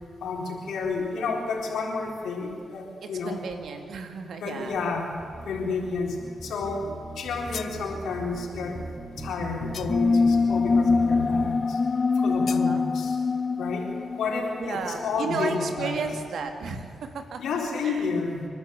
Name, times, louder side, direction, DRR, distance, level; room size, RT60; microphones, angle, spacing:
voice 1, 0.2-3.5 4.4-5.1 5.4-6.8 7.2-8.8 9.2-11.8 12.2-13.2 13.6-15.9 17.4-18.5, left 4 dB, 85° left, 0 dB, 4.1 m, -30 dB
voice 2, 3.0-4.8 12.5-12.8 14.6-17.4 17.8-18.1, right 5 dB, 75° right, 5 dB, 2.3 m, -33 dB
sound 1, 5.2-11.6, right 2 dB, 20° right, 1.9 m, -39 dB
sound 2, 7.2-7.8 9.7-10.2 12.5-12.7, left 7 dB, 70° left, 1.0 m, -40 dB
sound 3, 9.9-15.1, left 4 dB, 35° left, 0.8 m, -24 dB
27.5 x 12.0 x 8.3 m, 2.5 s
cardioid pair, 70°, 0 cm